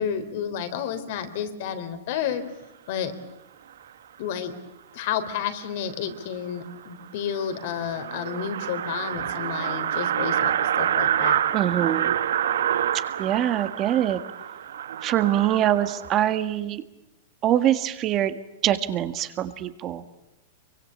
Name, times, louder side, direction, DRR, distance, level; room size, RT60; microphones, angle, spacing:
voice 1, 0.0-2.4 2.9-3.1 4.2-4.5 4.9-11.4, left 8 dB, 60° left, 9 dB, 3.6 m, -31 dB
sound 1, 6.2-6.3 6.6-6.7 7.0-7.1 7.4-16.1, right 10 dB, 80° right, 1.2 m, -27 dB
voice 2, 11.5-12.1 13.2-14.2 15.0-16.8 17.4-20.0, right 11 dB, 35° right, 10 dB, 1.7 m, -24 dB
25.0 x 24.0 x 8.7 m, 0.91 s
hypercardioid pair, 135°, 0 cm